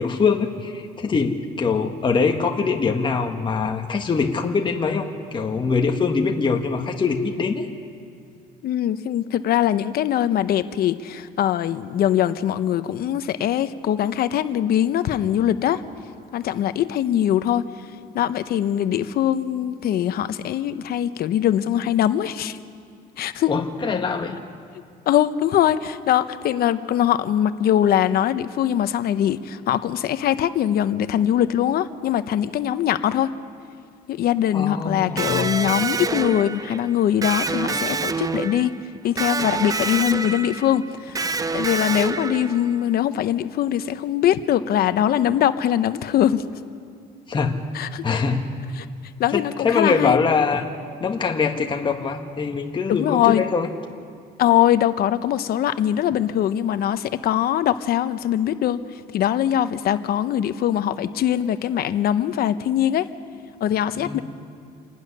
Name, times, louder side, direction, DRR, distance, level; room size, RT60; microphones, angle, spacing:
voice 1, 0.0-7.7 23.5-24.4 34.5-35.5 47.3-47.6 48.0-48.4 49.3-50.7 51.0-53.7 64.0-64.2, left 5 dB, 30° left, 2 dB, 1.5 m, -23 dB
voice 2, 8.6-15.8 16.3-17.6 18.1-22.6 23.2-23.5 25.1-33.3 34.1-38.7 39.0-46.4 47.7-48.0 48.8-48.9 49.2-50.2 52.9-53.4 54.4-58.8 59.1-63.1 63.6-64.2, left 11 dB, 65° left, 12 dB, 1.0 m, -22 dB
Electric guitar, 35.2-42.9, right 4 dB, 20° right, 0.6 m, -27 dB
27.5 x 12.0 x 9.9 m, 2.3 s
cardioid pair, 110°, 17 cm